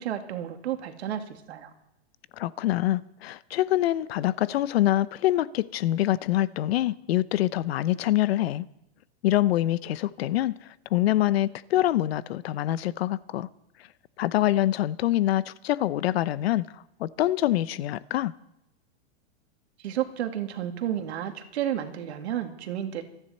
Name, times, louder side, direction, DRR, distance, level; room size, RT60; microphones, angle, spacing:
voice 1, 0.0-1.7 19.8-23.0, right 11 dB, 75° right, 2.4 m, -31 dB
voice 2, 2.4-8.7 9.2-13.5 14.2-18.3, left 14 dB, 65° left, 0.8 m, -25 dB
27.5 x 10.0 x 4.3 m
supercardioid pair, 160°, 33 cm